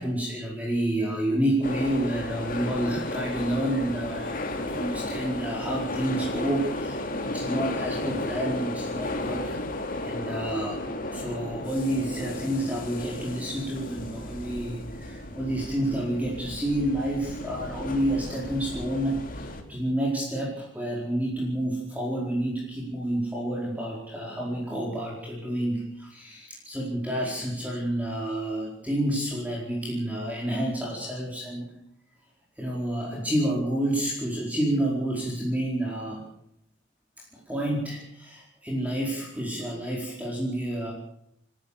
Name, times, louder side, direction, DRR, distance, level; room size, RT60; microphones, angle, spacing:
voice 1, 0.0-9.6 10.0-31.7 32.6-36.2 37.3-40.9, right 1 dB, 10° right, -4 dB, 4.6 m, -29 dB
sound 1, 1.6-19.6, left 2 dB, 45° left, 2.9 m, -34 dB
29.5 x 13.0 x 6.7 m, 0.75 s
head